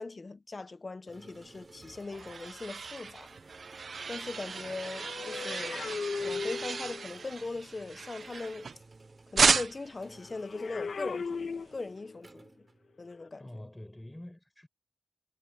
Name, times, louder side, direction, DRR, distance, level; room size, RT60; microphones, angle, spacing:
voice 1, 0.0-3.4 4.1-8.7 9.3-12.7 13.0-13.6, left 3 dB, 35° left, 0.8 m, -40 dB
sound 1, 1.1-13.4, right 3 dB, 35° right, 4.8 m, -57 dB
sound 2, 1.6-8.9 9.4-10.0, right 5 dB, 65° right, 0.6 m, -33 dB
sound 3, 4.4-7.1 10.3-12.2 13.1-13.3, left 5 dB, 75° left, 1.7 m, -38 dB
voice 2, 13.4-14.7, left 1 dB, 10° left, 7.6 m, -46 dB
wide cardioid pair, 130°, 0 cm